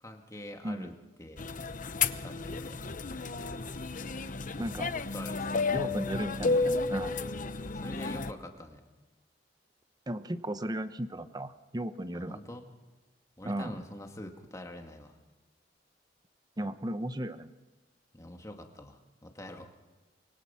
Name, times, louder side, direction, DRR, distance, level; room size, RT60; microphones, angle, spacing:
voice 1, 0.0-0.9 1.2-1.5 1.8-1.9 2.2-2.8 4.8-6.0 7.6-8.8 12.1-12.6 13.4-15.1 18.1-19.7, left 1 dB, 20° left, 4 dB, 2.0 m, -45 dB
voice 2, 0.6-0.9 4.6-5.0 5.7-7.2 10.1-12.4 13.4-13.8 16.6-17.5, right 1 dB, 25° right, 11 dB, 0.9 m, -35 dB
sound 1, 1.4-8.3, left 4 dB, 50° left, 0.8 m, -32 dB
25.0 x 22.5 x 5.7 m, 1.2 s
head